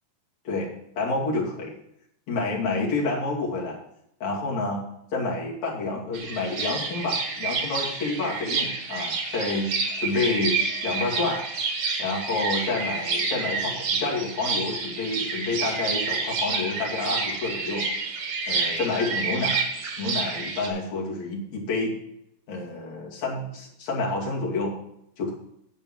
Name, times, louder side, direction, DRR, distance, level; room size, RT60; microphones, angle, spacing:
voice 1, 0.4-1.8 2.3-3.8 4.2-4.8 5.1-11.4 12.0-17.9 18.5-19.6 20.0-21.9 22.5-24.7 25.2-25.3, left 3 dB, 45° left, -3 dB, 3.2 m, -29 dB
sound 1, 6.1-20.7, right 4 dB, 55° right, 2.3 m, -29 dB
10.5 x 5.4 x 7.3 m, 0.77 s
omnidirectional pair, 4.9 m